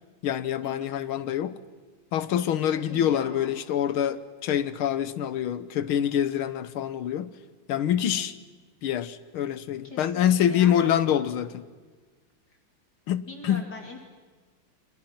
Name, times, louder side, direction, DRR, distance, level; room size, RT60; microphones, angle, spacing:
voice 1, 0.2-1.5 2.1-7.3 7.7-8.3 8.8-11.6 13.1-13.7, left 10 dB, 75° left, 1.9 m, -26 dB
voice 2, 2.9-3.5 9.9-10.9 13.3-14.0, left 2 dB, 50° left, 3.0 m, -42 dB
29.0 x 27.0 x 5.9 m
omnidirectional pair, 2.4 m